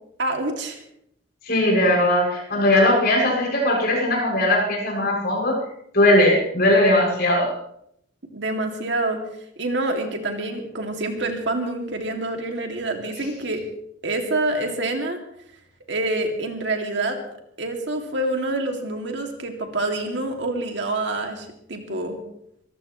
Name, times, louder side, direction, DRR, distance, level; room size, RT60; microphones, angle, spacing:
voice 1, 0.2-0.8 8.3-9.2 9.6-13.6 14.0-15.2 15.9-17.2 17.6-22.2, right 2 dB, 65° right, 3 dB, 2.5 m, -26 dB
voice 2, 1.4-5.6 5.9-7.6, left 1 dB, 55° left, -2 dB, 6.9 m, -19 dB
24.0 x 15.0 x 3.2 m, 0.72 s
head